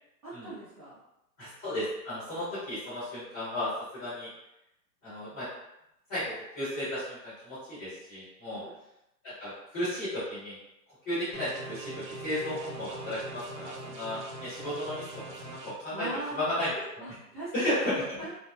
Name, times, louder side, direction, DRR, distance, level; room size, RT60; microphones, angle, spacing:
voice 1, 0.2-1.0 8.5-8.7 15.9-16.5 17.0-18.3, right 2 dB, 25° right, -12 dB, 0.7 m, -40 dB
voice 2, 1.4-4.3 5.0-5.5 6.1-8.6 9.2-10.6 11.0-16.1 16.3-16.7 17.5-18.0, left 1 dB, 20° left, -12 dB, 0.9 m, -34 dB
sound 1, 11.3-15.7, right 2 dB, 85° right, 0.9 m, -42 dB
2.8 x 2.0 x 2.2 m, 0.85 s
hypercardioid pair, 155°, 48 cm